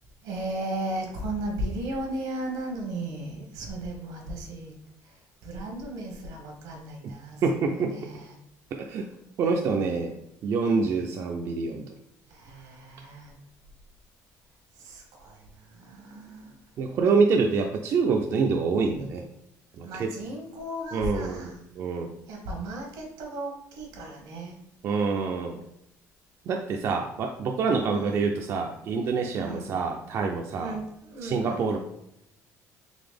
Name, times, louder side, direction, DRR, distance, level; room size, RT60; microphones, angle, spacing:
voice 1, 0.2-4.7 5.0-8.4 12.3-13.4 14.8-16.6 19.8-21.6 22.3-24.6 27.8-28.3 29.3-29.8 30.6-31.8, right 1 dB, 80° right, 1 dB, 1.2 m, -36 dB
voice 2, 7.4-7.9 8.7-9.1 9.4-10.1 10.4-11.8 16.8-19.2 19.8-20.1 20.9-22.1 24.8-25.6 26.5-30.8 31.2-31.8, right 4 dB, 45° right, 2 dB, 0.4 m, -26 dB
4.0 x 3.3 x 3.4 m, 0.79 s
cardioid pair, 140°, 6 cm